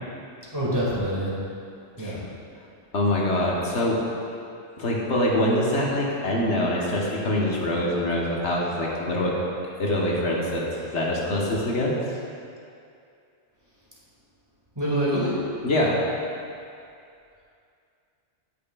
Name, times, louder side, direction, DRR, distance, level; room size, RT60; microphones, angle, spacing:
voice 1, 0.5-1.3 2.0-2.2 14.8-15.4, equal, 20° right, -8 dB, 1.8 m, -25 dB
voice 2, 2.9-4.0 4.8-9.4 9.8-11.9 15.6-16.0, left 1 dB, 75° left, -3 dB, 1.4 m, -24 dB
9.2 x 8.6 x 2.3 m, 2.4 s
omnidirectional pair, 1.2 m